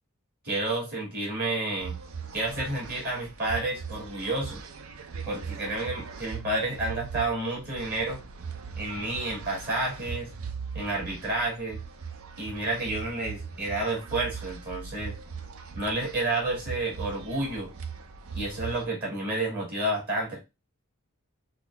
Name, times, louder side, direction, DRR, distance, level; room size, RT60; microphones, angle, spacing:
voice 1, 0.4-1.9 2.3-4.7 5.3-8.2 8.8-10.3 10.7-11.8 12.4-15.2 15.8-17.7 18.3-20.4, right 2 dB, 50° right, -3 dB, 2.3 m, -30 dB
sound 1, 1.8-18.9, right 5 dB, 85° right, 0.6 m, -40 dB
6.1 x 2.3 x 3.4 m, 0.24 s
head